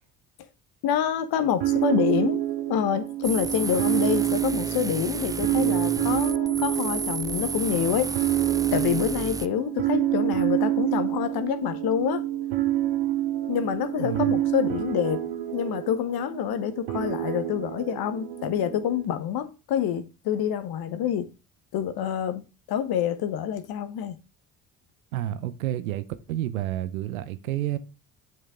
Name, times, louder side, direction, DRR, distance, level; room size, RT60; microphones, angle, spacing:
voice 1, 0.8-2.4 2.7-8.3 8.7-12.2 13.5-15.3 15.5-21.3 21.7-24.2, left 9 dB, 60° left, 1.2 m, -27 dB
sound 1, 1.6-19.0, right 13 dB, 65° right, 1.3 m, -27 dB
sound 2, 3.2-9.5, right 4 dB, 10° right, 0.4 m, -33 dB
voice 2, 14.0-14.3 25.1-27.8, right 13 dB, 85° right, 0.7 m, -30 dB
7.6 x 6.6 x 3.6 m
hypercardioid pair, 55°, 41 cm